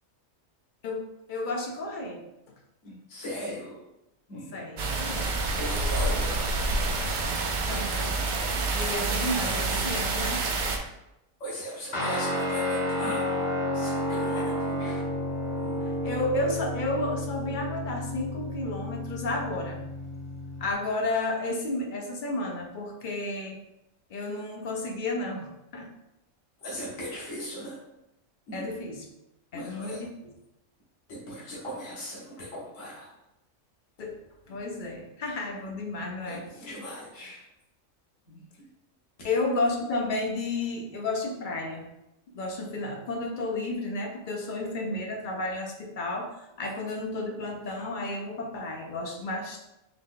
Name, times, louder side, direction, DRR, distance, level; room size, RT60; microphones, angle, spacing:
voice 1, 0.8-2.2 4.5-5.3 7.7-8.2 8.7-10.4 14.4-14.5 16.0-19.8 20.6-23.6 24.1-25.9 28.5-29.0 29.5-30.1 34.0-34.2 34.5-36.4 39.2-41.9 42.3-46.3 46.6-49.6, left 2 dB, 50° left, 2 dB, 0.6 m, -32 dB
voice 2, 2.8-3.8 4.3-4.6 5.1-5.2 5.6-6.6 11.4-13.4 13.7-15.0 15.6-15.8 26.6-27.9 28.5-28.7 29.5-30.0 31.1-33.1 34.5-34.6 36.3-37.5 38.3-38.7, equal, 70° left, -6 dB, 1.6 m, -38 dB
sound 1, 4.8-10.8, right 3 dB, 60° right, 0.5 m, -28 dB
Guitar, 11.9-20.7, left 1 dB, 35° left, 1.0 m, -31 dB
4.0 x 3.1 x 3.6 m, 0.89 s
omnidirectional pair, 1.4 m